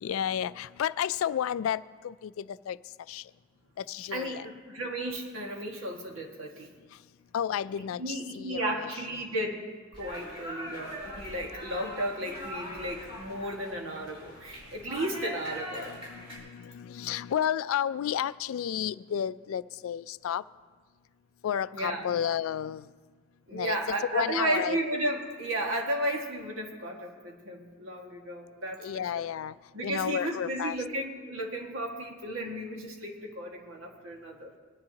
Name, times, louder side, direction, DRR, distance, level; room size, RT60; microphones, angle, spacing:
voice 1, 0.0-2.8 3.1-3.2 3.8-4.5 7.3-8.9 15.9-20.4 21.4-22.9 23.5-23.8 24.1-24.8 28.8-29.5 29.8-30.8, left 9 dB, 75° left, 17 dB, 0.3 m, -32 dB
voice 2, 4.1-6.7 8.0-9.7 10.0-15.9 21.7-22.0 23.5-29.3 29.7-34.5, right 1 dB, 70° right, 0 dB, 1.8 m, -34 dB
sound 1, 9.9-16.4, equal, 25° right, 4.3 m, -41 dB
21.0 x 10.5 x 2.9 m, 1.5 s
head